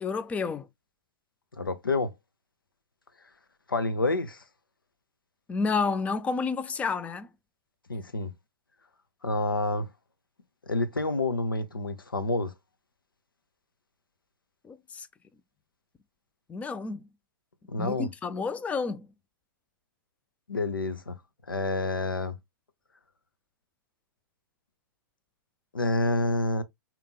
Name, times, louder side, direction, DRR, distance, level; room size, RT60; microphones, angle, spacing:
voice 1, 0.0-0.7 5.5-7.3 14.7-15.1 16.5-17.1 17.8-19.1, left 4 dB, 10° left, 0.3 m, -30 dB
voice 2, 1.5-2.1 3.7-4.4 7.9-8.3 9.2-9.9 10.7-12.5 17.7-18.1 20.5-21.2 21.5-22.4 25.7-26.6, left 2 dB, 85° left, 0.6 m, -28 dB
5.1 x 2.9 x 2.2 m
figure-of-eight pair, 110°, 11 cm